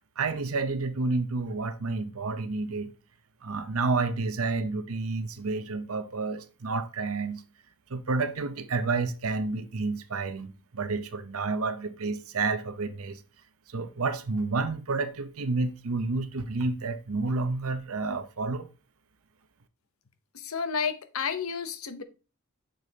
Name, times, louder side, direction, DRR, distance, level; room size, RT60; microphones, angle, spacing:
voice 1, 0.2-2.9 3.4-7.4 7.9-13.2 13.7-18.7, right 3 dB, 75° right, 0.8 m, -30 dB
voice 2, 20.3-22.0, left 6 dB, 70° left, 0.8 m, -31 dB
6.9 x 6.5 x 2.8 m
head